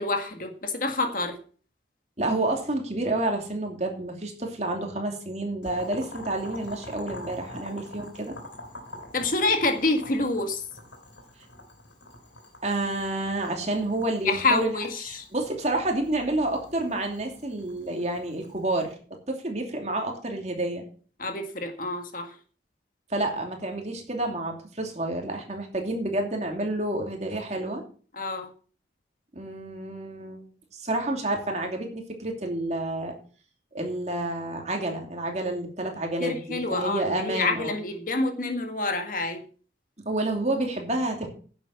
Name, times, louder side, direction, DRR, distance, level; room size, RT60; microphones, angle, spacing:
voice 1, 0.0-1.4 9.1-10.6 14.2-15.3 21.2-22.3 28.2-28.5 36.2-39.4, left 3 dB, 45° left, 5 dB, 1.8 m, -27 dB
voice 2, 2.2-8.4 12.6-14.7 15.0-18.9 19.3-20.8 23.1-27.8 29.3-30.4 30.7-33.1 33.7-37.8 40.0-41.3, right 2 dB, 35° right, 3 dB, 2.7 m, -29 dB
Boiling, 5.6-18.9, left 1 dB, 80° left, 4.3 m, -45 dB
11.0 x 7.6 x 7.0 m, 0.42 s
head